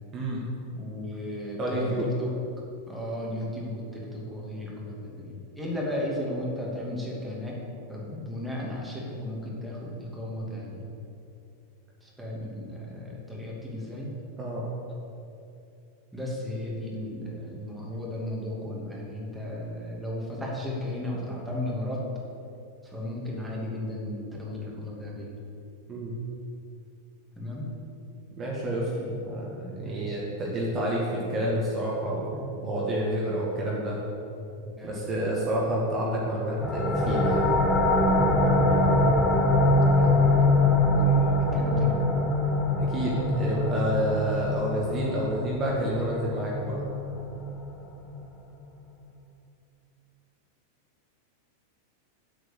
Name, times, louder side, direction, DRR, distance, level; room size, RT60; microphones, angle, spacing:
voice 1, 0.1-0.4 1.6-2.0 14.4-14.6 25.9-26.1 28.4-34.0 34.8-37.5 42.8-46.8, right 1 dB, 25° right, -4 dB, 1.9 m, -29 dB
voice 2, 0.7-2.3 2.9-7.6 7.9-10.8 12.0-14.1 16.1-22.0 22.8-25.4 27.3-27.7 29.0-29.2 29.7-30.2 33.0-33.2 34.6-35.6 38.2-40.4 40.7-41.9, left 1 dB, 5° right, -4 dB, 2.7 m, -35 dB
sound 1, 36.6-48.0, left 1 dB, 15° left, 1.7 m, -23 dB
7.9 x 7.5 x 8.4 m, 2.7 s
figure-of-eight pair, 90°, 0 cm